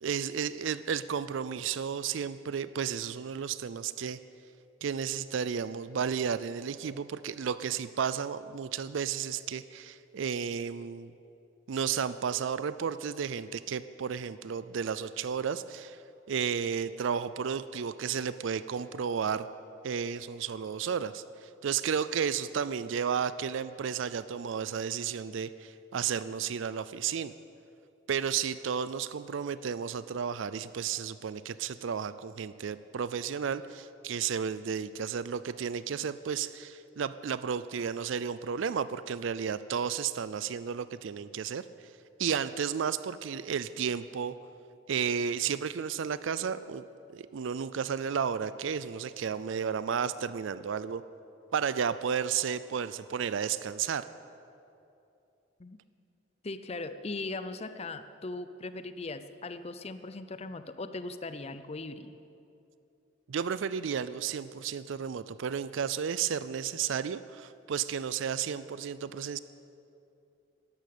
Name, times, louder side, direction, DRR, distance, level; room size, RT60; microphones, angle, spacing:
voice 1, 0.0-4.2 4.8-11.1 11.7-16.0 16.3-19.5 19.8-27.3 28.1-41.7 42.2-44.3 44.9-46.8 47.1-51.0 51.5-54.0 63.3-69.4, right 7 dB, 70° right, 14 dB, 0.4 m, -33 dB
voice 2, 56.4-62.2, left 3 dB, 30° left, 11 dB, 0.5 m, -39 dB
12.5 x 11.5 x 8.5 m, 2.7 s
head